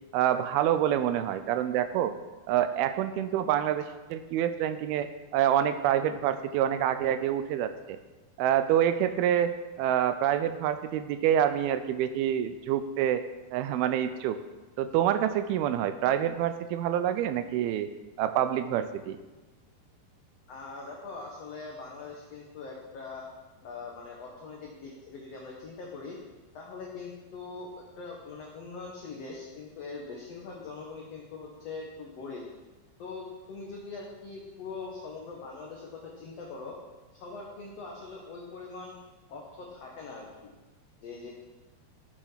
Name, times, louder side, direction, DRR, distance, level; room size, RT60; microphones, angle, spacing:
voice 1, 0.1-2.2 2.5-3.9 4.1-8.0 8.4-9.5 9.8-13.2 13.5-14.4 14.8-17.9 18.2-19.2, right 10 dB, 80° right, 11 dB, 2.4 m, -27 dB
voice 2, 20.5-23.3 23.6-26.2 26.5-27.7 28.0-32.4 33.0-36.8 37.1-39.0 39.3-40.5 41.0-41.3, left 4 dB, 55° left, -2 dB, 1.9 m, -42 dB
13.5 x 7.4 x 5.6 m, 1.2 s
omnidirectional pair, 4.6 m